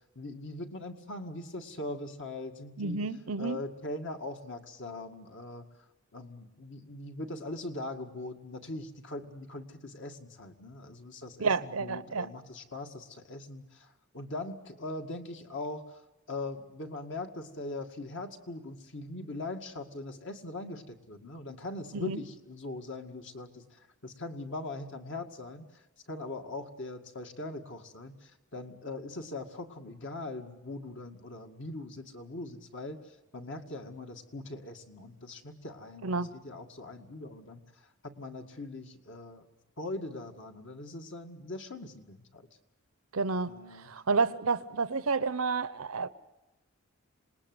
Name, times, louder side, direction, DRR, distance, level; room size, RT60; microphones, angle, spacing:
voice 1, 0.2-3.0 3.4-5.7 6.1-16.0 16.3-25.7 26.1-33.0 33.3-39.5 39.8-42.5 43.5-43.9, left 2 dB, 60° left, 4 dB, 2.1 m, -41 dB
voice 2, 2.8-3.6 11.4-12.3 21.9-22.2 36.0-36.3 43.1-43.5 43.9-46.1, right 4 dB, 75° right, 14 dB, 0.8 m, -30 dB
27.0 x 20.0 x 8.0 m, 1.0 s
head